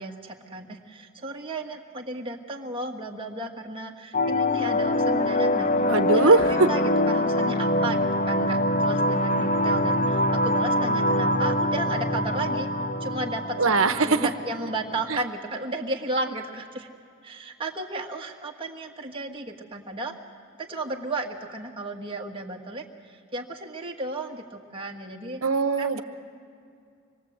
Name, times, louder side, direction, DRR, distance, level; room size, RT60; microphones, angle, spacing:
voice 1, 0.0-5.7 6.1-12.7 13.0-16.9 17.2-20.2 20.6-25.4 25.8-26.0, right 2 dB, 25° right, 0 dB, 1.8 m, -34 dB
sound 1, 4.1-15.1, left 1 dB, 40° left, 0.9 m, -24 dB
voice 2, 5.9-6.7 13.6-14.2 25.4-26.0, right 3 dB, 75° right, 9 dB, 1.1 m, -20 dB
26.0 x 21.0 x 8.0 m, 2.4 s
head